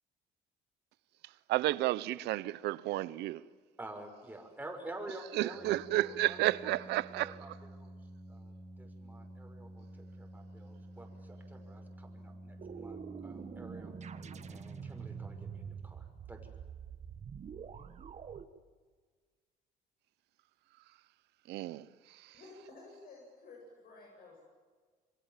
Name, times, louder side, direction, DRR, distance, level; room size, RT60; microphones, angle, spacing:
voice 1, 1.5-3.4 5.3-7.3 21.5-21.8, right 16 dB, 80° right, 0.9 m, -31 dB
voice 2, 3.8-7.9 8.3-13.9 14.5-16.5, right 2 dB, 10° right, 5.8 m, -49 dB
Organ, 5.4-16.2, right 1 dB, 10° left, 3.7 m, -51 dB
sound 1, 12.6-18.4, right 7 dB, 40° right, 1.6 m, -46 dB
voice 3, 22.3-24.4, left 3 dB, 60° left, 7.9 m, -53 dB
27.5 x 23.5 x 7.5 m
cardioid pair, 110°, 17 cm